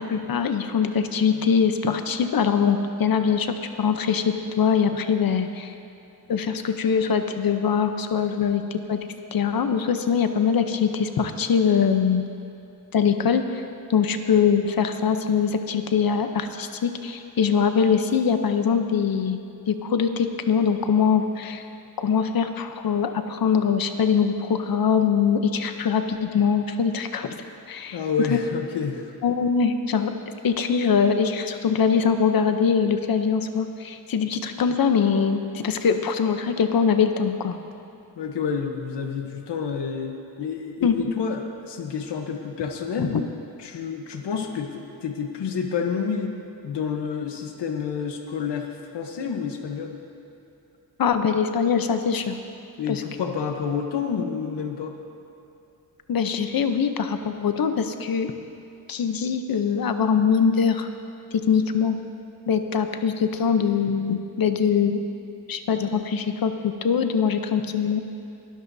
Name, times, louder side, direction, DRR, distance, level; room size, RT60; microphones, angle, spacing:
voice 1, 0.0-5.7 6.3-9.0 9.3-12.3 12.9-13.6 13.9-19.4 19.7-21.6 22.0-27.3 27.7-28.0 29.2-30.1 30.4-37.6 40.8-41.1 43.0-43.2 51.0-52.4 52.9-53.0 56.1-58.3 58.9-60.9 61.5-62.0 62.5-65.0 65.5-68.0, left 6 dB, 60° left, 7 dB, 0.8 m, -22 dB
voice 2, 27.9-29.1 38.2-43.1 43.6-46.3 46.6-50.0 52.8-54.9, left 6 dB, 80° left, 4 dB, 1.1 m, -29 dB
21.5 x 12.5 x 2.7 m, 2.9 s
wide cardioid pair, 170°, 41 cm